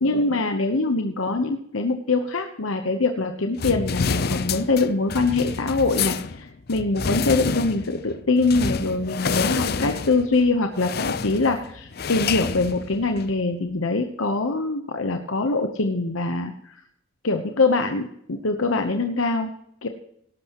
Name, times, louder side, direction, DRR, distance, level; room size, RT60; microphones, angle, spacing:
voice 1, 0.0-16.8 17.2-19.5 19.8-19.9, left 3 dB, 85° left, 6 dB, 0.9 m, -23 dB
sound 1, 3.6-13.4, left 5 dB, 50° left, 0.5 m, -28 dB
18.0 x 11.5 x 3.0 m, 0.73 s
head